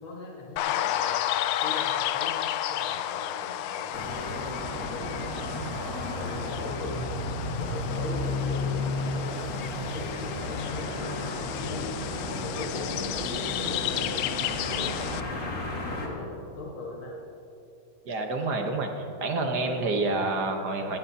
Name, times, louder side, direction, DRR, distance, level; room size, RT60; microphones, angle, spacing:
voice 1, 0.0-1.3 1.6-4.4 4.9-7.0 7.7-9.5 9.9-12.0 12.4-15.3 15.6-17.2, left 2 dB, 70° left, -2 dB, 2.4 m, -40 dB
sound 1, 0.6-15.2, left 12 dB, 90° left, 1.5 m, -33 dB
sound 2, 3.9-16.1, left 2 dB, 45° left, 2.2 m, -33 dB
voice 2, 18.1-18.9 19.2-21.0, right 3 dB, 55° right, 4 dB, 1.5 m, -28 dB
18.5 x 16.0 x 2.8 m, 2.7 s
omnidirectional pair, 2.3 m